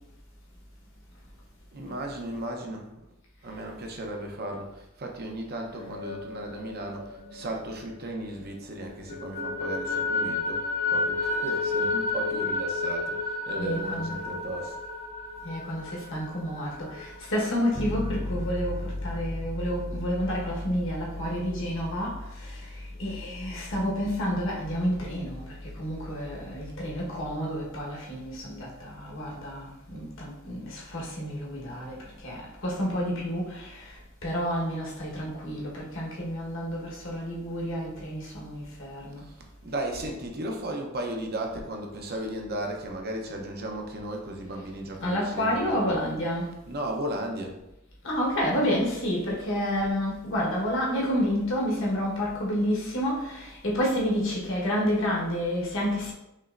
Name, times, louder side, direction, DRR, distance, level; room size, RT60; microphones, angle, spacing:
voice 1, 1.7-3.2 3.4-14.8 39.2-46.2 46.7-47.6, right 1 dB, 50° right, 2 dB, 0.8 m, -35 dB
sound 1, 5.6-8.5 8.8-18.2, left 3 dB, 40° left, 0.8 m, -32 dB
voice 2, 13.6-14.2 15.4-39.3 45.0-46.6 48.0-56.1, equal, 70° left, -3 dB, 1.3 m, -30 dB
Bass guitar, 17.7-27.5, left 1 dB, 20° left, 0.3 m, -38 dB
5.4 x 3.1 x 2.5 m, 0.88 s
head